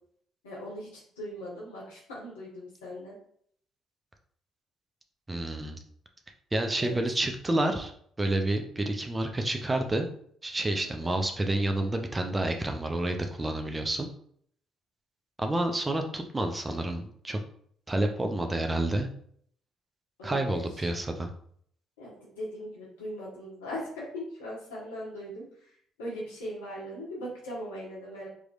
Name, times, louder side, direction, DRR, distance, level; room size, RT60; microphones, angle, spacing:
voice 1, 0.4-3.1 6.7-7.0 10.8-11.2 20.2-20.9 22.0-28.3, equal, 85° left, -6 dB, 1.5 m, -40 dB
voice 2, 5.3-5.8 6.5-7.9 8.2-10.1 10.4-14.1 15.4-17.4 17.9-19.1 20.2-21.3, right 1 dB, 25° right, 4 dB, 0.7 m, -29 dB
4.8 x 3.0 x 2.6 m, 0.63 s
hypercardioid pair, 50°, 0 cm